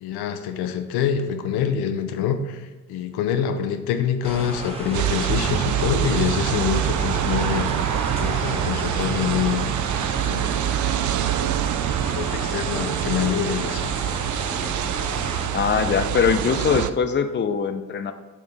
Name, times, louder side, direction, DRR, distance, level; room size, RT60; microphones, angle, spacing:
voice 1, 0.0-7.7 8.2-9.7 10.1-10.9 12.1-13.9, left 8 dB, 80° left, 8 dB, 0.7 m, -26 dB
sound 1, 4.2-15.5, right 1 dB, 15° right, 1.9 m, -33 dB
sound 2, 4.9-16.9, right 11 dB, 50° right, 0.5 m, -25 dB
voice 2, 15.5-18.1, left 6 dB, 30° left, 10 dB, 0.6 m, -22 dB
7.1 x 6.1 x 3.5 m, 1.2 s
supercardioid pair, 55°, 38 cm